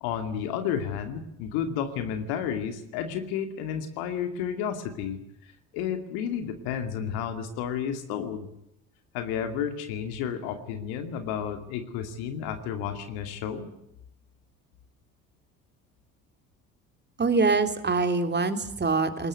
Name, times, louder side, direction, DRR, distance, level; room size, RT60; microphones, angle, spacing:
voice 1, 0.0-8.5 9.1-13.7, left 8 dB, 65° left, 8 dB, 2.5 m, -32 dB
voice 2, 17.2-19.3, right 4 dB, 25° right, 8 dB, 3.3 m, -24 dB
21.0 x 20.5 x 9.2 m, 0.80 s
figure-of-eight pair, 55°, 41 cm